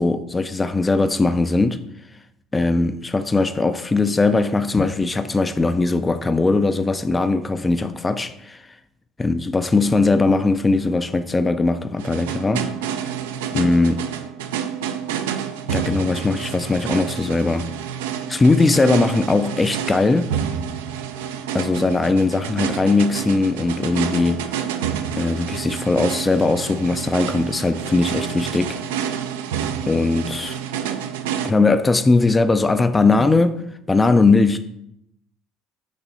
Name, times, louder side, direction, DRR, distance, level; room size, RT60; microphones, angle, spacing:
voice 1, 0.0-1.8 2.5-8.7 9.2-12.7 13.5-14.0 15.7-17.7 18.3-20.3 21.5-24.4 25.2-28.8 29.9-30.6 31.4-33.6 33.9-34.6, left 3 dB, 20° left, 0.3 m, -19 dB
sound 1, 12.0-31.5, right 8 dB, 85° right, 0.3 m, -28 dB
5.0 x 2.7 x 3.9 m
hypercardioid pair, 70°, 0 cm